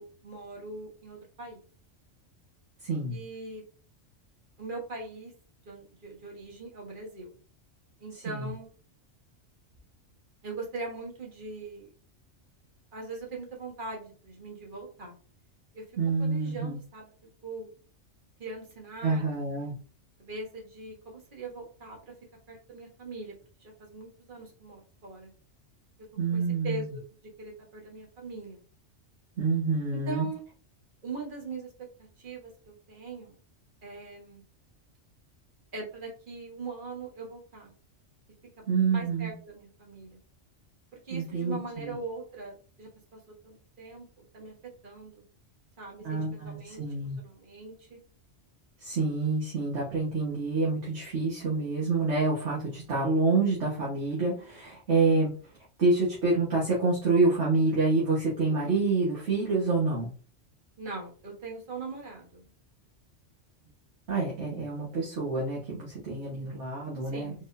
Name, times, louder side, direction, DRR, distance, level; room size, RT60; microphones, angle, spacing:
voice 1, 0.0-1.6 3.1-3.6 4.6-5.3 5.6-7.3 8.0-8.7 10.4-11.9 12.9-15.1 15.7-15.8 16.2-17.1 17.4-17.7 18.4-19.7 20.2-22.1 22.5-23.3 23.6-25.3 26.3-27.0 27.4-28.6 29.9-30.4 31.0-31.7 32.0-33.3 33.8-34.4 35.7-37.7 38.9-40.2 41.0-44.5 44.8-45.2 45.8-46.8 47.2-48.0 60.8-62.4 67.1-67.5, right 3 dB, 45° right, 0 dB, 1.4 m, -41 dB
voice 2, 2.8-3.2 8.2-8.5 16.0-16.8 19.0-19.7 26.2-26.9 29.4-30.3 38.7-39.3 41.1-41.9 46.0-47.2 48.8-55.3 55.8-60.1 64.1-67.3, right 3 dB, 75° right, -6 dB, 1.7 m, -27 dB
4.4 x 3.8 x 2.6 m, 0.40 s
omnidirectional pair, 1.2 m